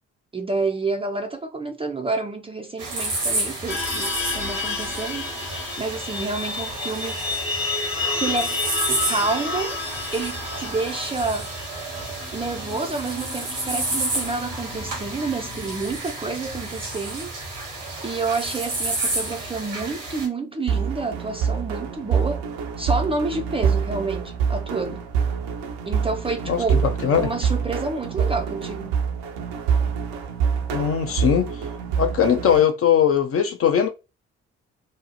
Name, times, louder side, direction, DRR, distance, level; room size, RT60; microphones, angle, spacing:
voice 1, 0.3-5.3 5.8-7.2 8.1-8.6 8.9-9.8 10.1-11.5 12.3-17.3 18.0-22.4 22.8-25.0 25.9-26.8 27.2-29.0, right 3 dB, 15° right, 0.4 m, -28 dB
sound 1, 2.8-20.3, right 2 dB, 85° right, 1.0 m, -30 dB
sound 2, 3.7-16.2, left 4 dB, 65° left, 1.0 m, -31 dB
sound 3, 20.7-32.7, right 7 dB, 70° right, 0.6 m, -26 dB
voice 2, 26.5-27.3 30.7-31.5 32.0-33.9, left 8 dB, 40° left, 0.6 m, -20 dB
2.7 x 2.0 x 2.8 m
figure-of-eight pair, 40°, 36 cm